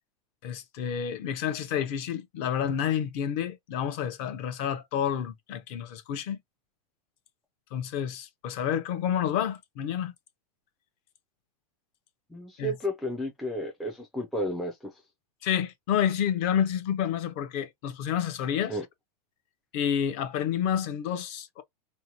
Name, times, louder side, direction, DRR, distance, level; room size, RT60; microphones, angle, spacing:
voice 1, 0.4-6.4 7.7-10.1 12.6-12.7 15.4-18.8 19.7-21.6, left 9 dB, 40° left, 0.6 m, -29 dB
voice 2, 12.3-14.8 18.7-18.8, equal, ahead, 0.3 m, -32 dB
2.7 x 2.1 x 2.8 m
supercardioid pair, 145°, 20 cm